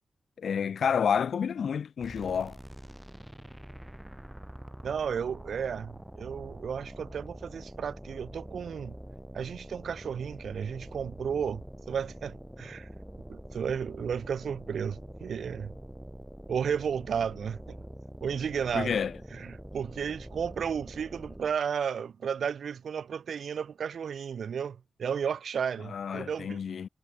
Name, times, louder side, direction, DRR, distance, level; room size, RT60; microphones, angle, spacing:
voice 1, 0.4-2.6 18.7-19.1 25.8-26.9, left 7 dB, 70° left, 0.4 m, -29 dB
sound 1, 2.0-21.6, right 1 dB, 5° right, 3.1 m, -45 dB
voice 2, 4.8-8.9 9.3-11.6 11.9-12.9 13.3-15.7 16.5-17.8 18.2-19.0 19.3-26.6, right 7 dB, 75° right, 2.1 m, -33 dB
wide cardioid pair, 110°, 0 cm